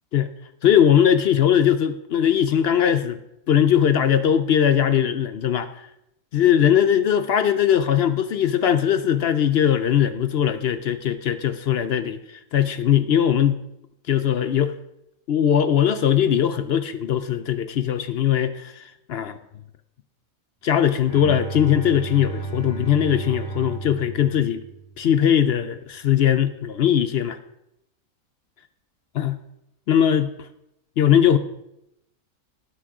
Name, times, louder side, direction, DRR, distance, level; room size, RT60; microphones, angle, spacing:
voice 1, 0.6-3.2 3.5-5.9 6.3-12.2 12.5-13.6 14.1-14.7 15.3-19.4 20.6-24.6 25.0-27.4 29.2-29.4 29.9-30.3 31.0-31.4, left 9 dB, 60° left, 12 dB, 0.7 m, -20 dB
Bowed string instrument, 21.1-25.2, right 4 dB, 25° left, 1.9 m, -34 dB
17.5 x 6.2 x 4.8 m, 0.83 s
omnidirectional pair, 1.5 m